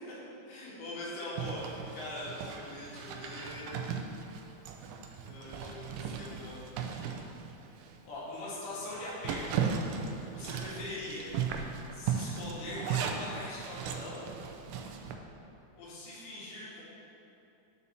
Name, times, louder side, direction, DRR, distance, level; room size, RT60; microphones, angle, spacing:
voice 1, 0.5-3.7 5.2-6.6 8.1-9.6 10.3-11.3 11.9-14.3 15.8-16.8, left 2 dB, 75° left, -7 dB, 3.9 m, -42 dB
Zipper (clothing), 1.4-8.0 8.4-8.5 8.9-15.2, right 7 dB, 85° right, 1.9 m, -37 dB
10.5 x 4.2 x 6.9 m, 2.8 s
omnidirectional pair, 4.6 m